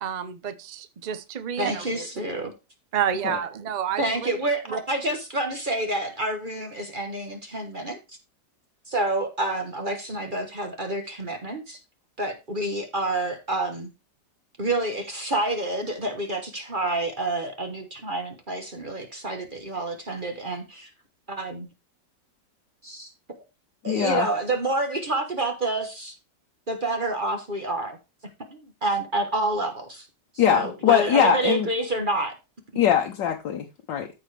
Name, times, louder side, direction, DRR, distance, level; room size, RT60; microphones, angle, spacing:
voice 1, 0.0-2.1 2.9-4.3 4.7-4.8, right 9 dB, 75° right, 0.4 m, -29 dB
voice 2, 1.6-2.5 4.0-8.0 8.9-11.8 12.2-13.9 14.6-20.9 21.3-21.7 22.8-23.1 23.8-26.1 26.7-28.0 28.5-30.1 30.5-32.4, right 2 dB, 30° right, 1.2 m, -28 dB
voice 3, 23.9-24.3 30.4-31.7 32.8-34.2, left 8 dB, 80° left, 1.6 m, -22 dB
13.5 x 4.8 x 3.3 m
omnidirectional pair, 1.9 m